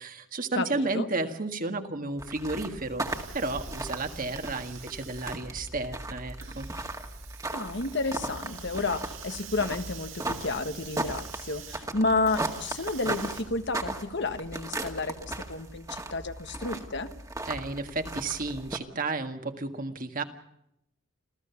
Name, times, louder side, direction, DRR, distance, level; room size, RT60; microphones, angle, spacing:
voice 1, 0.0-3.1 3.3-6.7 17.5-20.2, right 3 dB, 45° right, 7 dB, 1.8 m, -32 dB
voice 2, 0.5-1.1 7.5-17.1, left 3 dB, 60° left, 9 dB, 1.5 m, -31 dB
sound 1, 2.2-18.8, right 2 dB, 15° right, 1.9 m, -37 dB
Hiss, 3.0-13.4, right 7 dB, 80° right, 3.7 m, -46 dB
27.5 x 15.5 x 7.0 m, 0.80 s
head